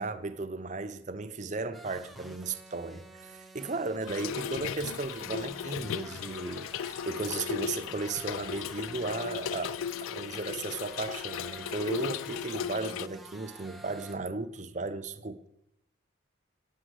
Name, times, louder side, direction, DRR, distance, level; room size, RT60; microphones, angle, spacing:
voice 1, 0.0-15.5, right 3 dB, 35° right, 0.6 m, -35 dB
sound 1, 1.7-14.2, right 1 dB, ahead, 0.7 m, -50 dB
Trickle dribble / Fill (with liquid), 4.1-13.1, left 8 dB, 80° left, 0.3 m, -36 dB
9.0 x 7.4 x 7.9 m
head